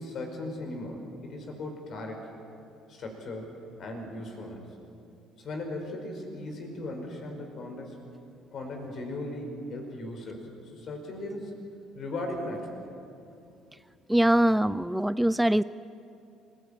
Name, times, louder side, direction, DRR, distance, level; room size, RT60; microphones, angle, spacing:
voice 1, 0.0-2.2 2.9-3.5 3.8-4.8 5.4-8.0 8.5-11.6 11.9-12.8, left 1 dB, 45° left, 3 dB, 5.3 m, -37 dB
voice 2, 14.1-15.6, right 1 dB, 5° right, 16 dB, 0.4 m, -23 dB
27.0 x 16.5 x 9.0 m, 2.6 s
figure-of-eight pair, 50°, 0 cm